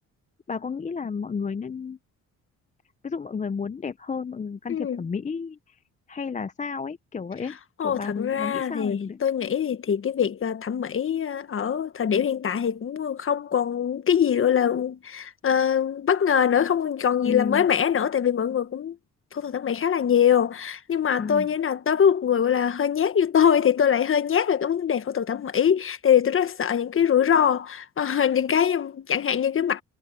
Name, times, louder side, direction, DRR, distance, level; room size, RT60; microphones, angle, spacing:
voice 1, 0.5-2.0 3.0-5.8 6.1-7.6 7.8-9.2 17.2-17.7 21.2-21.5, left 5 dB, 25° left, 0.6 m, -32 dB
voice 2, 7.8-18.9 19.3-29.8, left 8 dB, 45° left, 1.3 m, -23 dB
cardioid pair, 90°, 30 cm